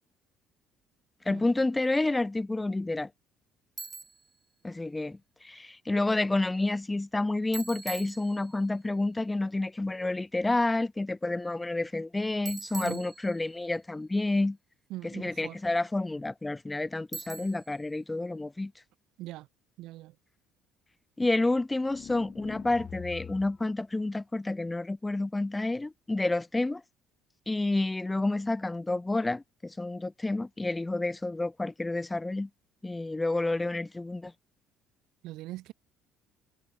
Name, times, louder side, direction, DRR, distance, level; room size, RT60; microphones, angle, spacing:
voice 1, 1.3-3.1 4.6-14.6 15.0-18.7 21.2-26.8 27.5-32.5 32.8-34.3, left 2 dB, 10° left, 0.4 m, -29 dB
Bicycle, 3.8-4.3 7.5-8.8 12.5-13.7 17.1-17.8, right 4 dB, 20° right, 2.7 m, -42 dB
voice 2, 14.9-15.6 19.2-19.5 19.8-20.1 35.2-35.7, right 17 dB, 75° right, 0.6 m, -41 dB
sound 1, 21.9-23.7, left 8 dB, 40° left, 2.7 m, -43 dB
cardioid pair, 115°, 0 cm